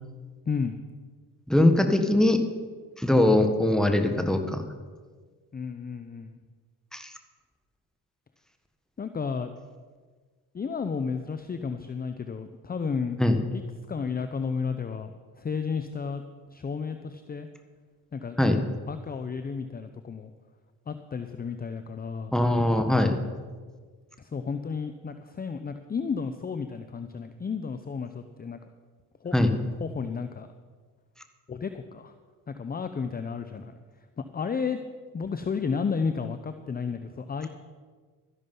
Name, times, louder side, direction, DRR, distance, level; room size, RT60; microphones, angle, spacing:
voice 1, 1.5-2.4 3.0-4.6 6.9-7.1 13.2-13.4 18.4-18.6 22.3-23.1 29.3-29.5, left 1 dB, ahead, 6 dB, 1.5 m, -21 dB
voice 2, 5.5-6.4 9.0-9.5 10.5-13.2 13.5-13.6 13.9-16.2 16.5-17.5 18.1-18.4 18.9-20.3 20.9-22.4 24.2-28.6 29.2-29.3 29.8-30.5 31.5-32.1 32.5-33.7 34.2-34.8 35.1-37.5, left 5 dB, 25° left, 9 dB, 0.7 m, -32 dB
13.5 x 11.0 x 5.6 m, 1.5 s
cardioid pair, 90°, 39 cm